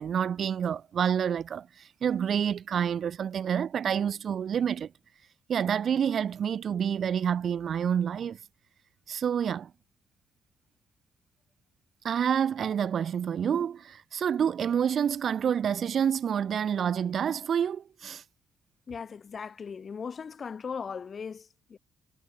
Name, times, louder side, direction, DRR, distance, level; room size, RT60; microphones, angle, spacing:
voice 1, 0.0-4.9 5.5-8.4 9.1-9.7 12.0-18.2, right 8 dB, 55° right, 1.6 m, -28 dB
voice 2, 18.9-21.8, left 6 dB, 45° left, 1.3 m, -38 dB
cardioid pair, 90°, 0 cm